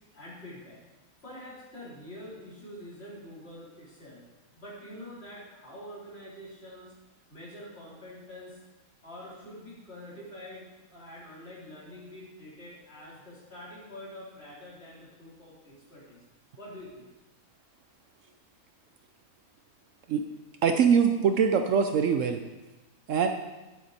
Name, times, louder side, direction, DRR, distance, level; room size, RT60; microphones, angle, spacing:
voice 1, 0.1-0.8 1.2-4.2 4.5-6.9 7.3-8.6 9.0-16.2 16.6-17.1, left 1 dB, 45° left, -6 dB, 3.6 m, -46 dB
voice 2, 20.6-22.4 23.1-23.3, right 6 dB, 65° right, 6 dB, 0.9 m, -23 dB
11.0 x 8.5 x 4.1 m, 1.1 s
omnidirectional pair, 1.5 m